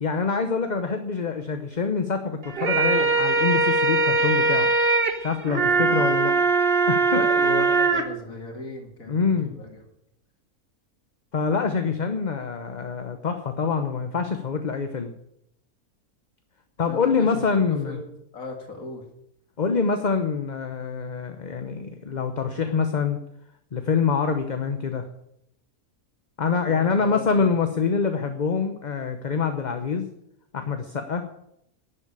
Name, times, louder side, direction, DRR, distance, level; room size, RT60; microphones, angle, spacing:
voice 1, 0.0-4.7 5.2-6.4 6.9-7.2 9.1-9.6 11.3-15.1 16.8-18.0 19.6-23.2 23.7-25.1 26.4-30.1 30.5-31.3, left 5 dB, 35° left, 7 dB, 0.9 m, -25 dB
sound 1, 2.4-8.0, right 3 dB, 40° right, 1.5 m, -21 dB
voice 2, 5.5-6.1 7.1-9.8 16.8-17.3 17.6-19.0 26.7-27.5, left 2 dB, 65° left, 3 dB, 2.5 m, -36 dB
11.5 x 7.5 x 9.8 m, 0.77 s
omnidirectional pair, 1.6 m